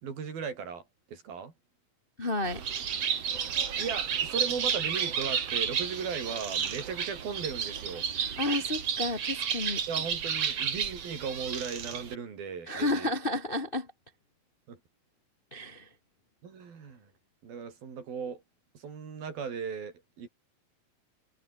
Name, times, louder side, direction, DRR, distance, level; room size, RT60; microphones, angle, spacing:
voice 1, 0.0-1.5 3.8-8.1 9.9-13.1 14.7-14.8 16.4-17.1 17.4-18.4 18.7-20.3, right 6 dB, 85° right, 6.2 m, -37 dB
voice 2, 2.2-2.6 8.2-9.8 12.7-13.9 15.5-15.9, left 2 dB, 70° left, 0.5 m, -31 dB
Bird, 2.4-12.2, right 7 dB, 50° right, 3.0 m, -32 dB
omnidirectional pair, 4.1 m